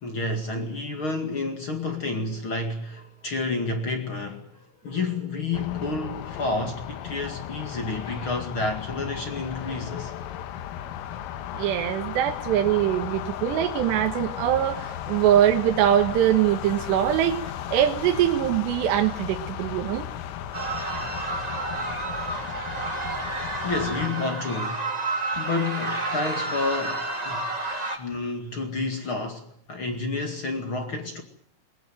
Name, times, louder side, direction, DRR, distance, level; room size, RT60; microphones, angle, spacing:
voice 1, 0.0-4.6 4.8-10.1 23.6-24.8 25.3-27.5 28.0-31.2, left 3 dB, 50° left, 1.5 m, -30 dB
sound 1, 5.5-24.1, left 10 dB, 80° left, 3.9 m, -35 dB
voice 2, 11.5-17.4 17.7-20.1, right 11 dB, 70° right, 3.1 m, -22 dB
sound 2, 20.5-28.0, right 2 dB, 15° right, 1.2 m, -30 dB
21.5 x 21.0 x 9.1 m
omnidirectional pair, 5.9 m